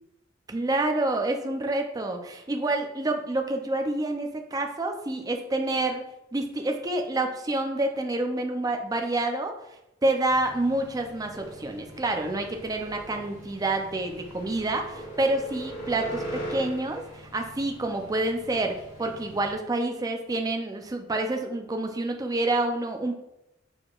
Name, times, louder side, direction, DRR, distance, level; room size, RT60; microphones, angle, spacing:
voice 1, 0.5-6.0 6.3-9.5 10.0-23.1, right 2 dB, 20° right, 4 dB, 0.4 m, -28 dB
sound 1, 10.3-19.5, right 1 dB, 70° left, 1.5 m, -41 dB
4.7 x 4.2 x 2.4 m, 0.87 s
head